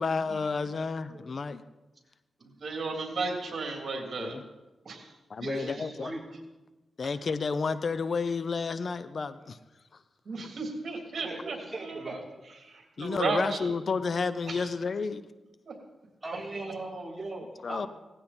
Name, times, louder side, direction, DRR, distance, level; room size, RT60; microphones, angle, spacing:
voice 1, 0.0-1.6 4.2-4.5 5.3-6.1 7.0-9.6 9.9-10.0 13.0-15.3 17.6-17.9, left 4 dB, 55° left, 13 dB, 0.7 m, -31 dB
voice 2, 2.4-4.4 4.9-5.1 10.3-12.1 12.6-13.7 14.5-14.6 15.6-15.7, right 3 dB, 60° right, 2 dB, 3.5 m, -34 dB
voice 3, 5.4-6.2 11.2-12.2 16.2-17.9, right 2 dB, 20° right, -2 dB, 3.8 m, -38 dB
18.0 x 15.5 x 4.4 m, 1.1 s
cardioid pair, 85°, 0 cm